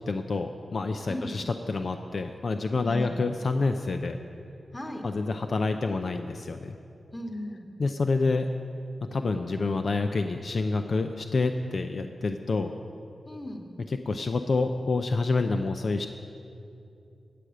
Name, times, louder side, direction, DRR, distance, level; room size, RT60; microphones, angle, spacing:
voice 1, 0.1-4.2 5.0-6.8 7.8-8.5 9.1-12.7 13.9-16.1, left 3 dB, 60° left, 6 dB, 0.5 m, -28 dB
voice 2, 4.7-5.0 7.1-7.6 13.2-13.6, left 1 dB, 20° left, 2 dB, 1.7 m, -36 dB
14.5 x 5.0 x 8.7 m, 2.6 s
cardioid pair, 70°, 0 cm